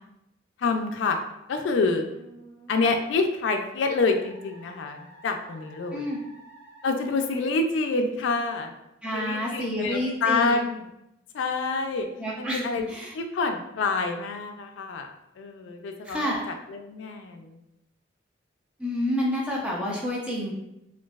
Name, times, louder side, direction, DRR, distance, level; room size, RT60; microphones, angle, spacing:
voice 1, 0.6-1.2 1.5-2.0 2.7-6.1 6.8-8.7 9.1-10.8 11.3-12.1 12.4-12.8 13.1-15.1 15.4-17.6, left 3 dB, 85° left, 5 dB, 0.3 m, -27 dB
Musical instrument, 2.1-7.3, right 2 dB, 60° right, 0.9 m, -51 dB
voice 2, 9.0-10.5 12.2-12.6 12.9-13.1 16.0-16.5 18.8-20.5, equal, 5° right, -3 dB, 0.5 m, -29 dB
2.9 x 2.6 x 2.3 m, 0.87 s
head